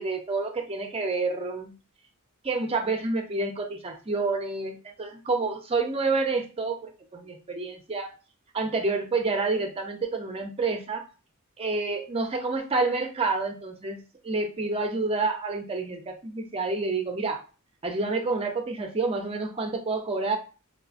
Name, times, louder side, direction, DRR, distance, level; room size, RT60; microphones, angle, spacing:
voice 1, 0.0-1.7 2.4-8.1 8.5-11.0 11.6-14.0 14.2-17.4 17.8-20.4, right 3 dB, 25° right, 4 dB, 0.5 m, -28 dB
4.7 x 2.1 x 2.4 m, 0.34 s
head